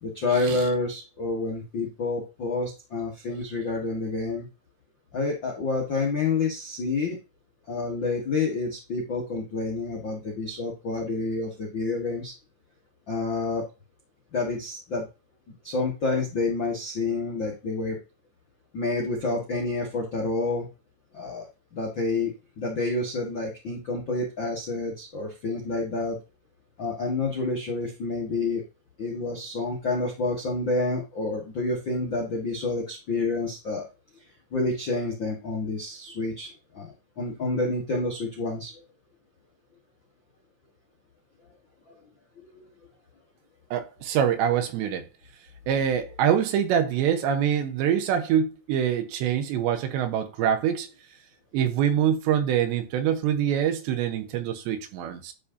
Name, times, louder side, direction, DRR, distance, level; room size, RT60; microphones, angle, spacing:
voice 1, 0.0-4.5 5.1-7.2 7.7-12.3 13.1-13.7 14.3-15.1 15.6-18.0 18.7-20.7 21.1-26.2 26.8-28.6 29.0-33.9 34.5-38.7 41.9-42.0 42.4-42.7, left 3 dB, 80° left, 1.0 m, -29 dB
voice 2, 43.7-45.1 45.7-50.9 51.5-55.3, right 9 dB, 80° right, 3.2 m, -25 dB
11.5 x 5.0 x 2.8 m
omnidirectional pair, 5.1 m